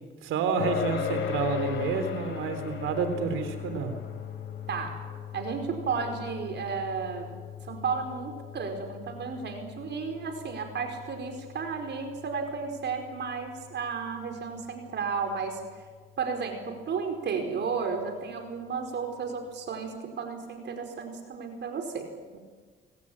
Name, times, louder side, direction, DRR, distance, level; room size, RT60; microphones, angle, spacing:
voice 1, 0.2-3.9, right 5 dB, 85° right, 8 dB, 3.5 m, -29 dB
sound 1, 0.6-15.5, left 8 dB, 90° left, 3.7 m, -38 dB
voice 2, 4.7-5.0 5.3-7.3 7.6-15.9 16.2-22.4, right 5 dB, 60° right, 5 dB, 4.8 m, -33 dB
28.5 x 18.0 x 8.8 m, 1.5 s
cardioid pair, 90°, 20 cm